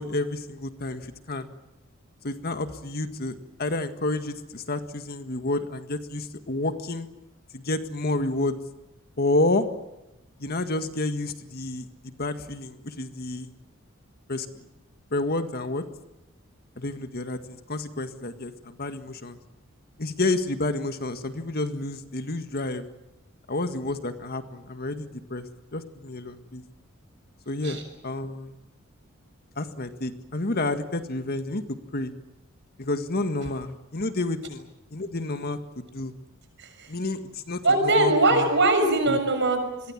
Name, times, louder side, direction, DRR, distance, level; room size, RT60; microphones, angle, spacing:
voice 1, 0.0-1.5 2.2-7.1 7.5-8.6 9.2-9.7 10.4-13.5 14.3-14.6 15.1-15.8 16.8-19.4 20.0-22.9 23.5-26.6 27.5-28.6 29.6-32.1 32.8-34.7 34.9-36.1 36.9-38.5 39.1-39.2, left 2 dB, 50° left, 9 dB, 1.8 m, -30 dB
voice 2, 36.6-36.9 37.6-39.9, right 2 dB, 60° right, 7 dB, 6.7 m, -22 dB
28.5 x 22.0 x 7.5 m, 0.93 s
head